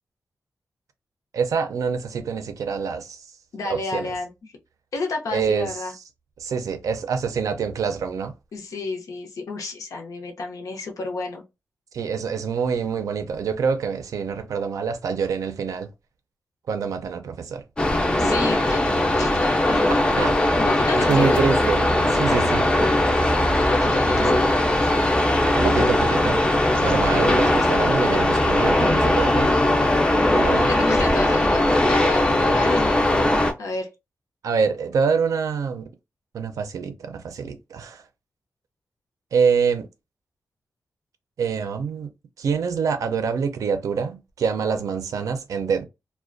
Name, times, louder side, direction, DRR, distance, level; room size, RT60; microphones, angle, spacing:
voice 1, 1.3-3.2 3.7-4.1 5.3-5.7 6.4-8.3 11.9-15.9 16.7-17.6 20.2-20.4 21.1-21.9 22.2-22.6 24.2-24.4 25.5-26.4 26.8-29.5 30.3-30.7 34.4-35.9 36.3-38.0 39.3-39.9 41.4-42.1 42.4-45.8, right 6 dB, 90° right, 0.4 m, -25 dB
voice 2, 3.5-4.5 4.9-5.9 8.5-11.4 18.2-19.9 20.6-21.5 22.1-22.5 23.4-24.9 30.5-33.3 33.6-33.9, left 3 dB, 90° left, 0.6 m, -31 dB
sound 1, 17.8-33.5, left 1 dB, 15° left, 0.3 m, -19 dB
2.4 x 2.1 x 2.5 m
wide cardioid pair, 165°, 6 cm